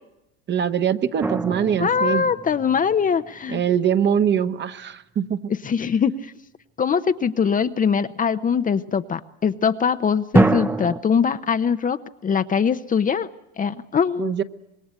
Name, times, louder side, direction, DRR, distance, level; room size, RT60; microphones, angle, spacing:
voice 1, 0.5-2.3 3.5-5.5 14.2-14.4, right 8 dB, 30° right, 10 dB, 1.3 m, -23 dB
sound 1, 1.2-3.3 10.3-11.0, right 2 dB, 5° right, 1.0 m, -23 dB
voice 2, 1.8-3.6 5.6-6.3 6.8-13.3 13.6-14.4, left 6 dB, 25° left, 10 dB, 0.9 m, -22 dB
26.5 x 21.0 x 8.3 m, 0.89 s
hypercardioid pair, 100°, 34 cm